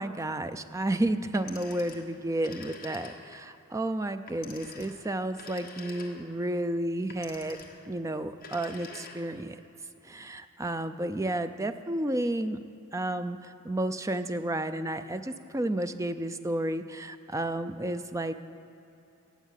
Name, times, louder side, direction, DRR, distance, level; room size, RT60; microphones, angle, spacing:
voice 1, 0.0-7.6 7.9-9.6 10.0-12.6 12.9-18.3, right 1 dB, 15° right, 10 dB, 0.4 m, -31 dB
Telephone, 1.3-3.5 4.3-6.4 7.1-7.9 8.3-9.5, left 4 dB, 40° left, 1.5 m, -47 dB
17.0 x 8.4 x 7.4 m, 2.8 s
head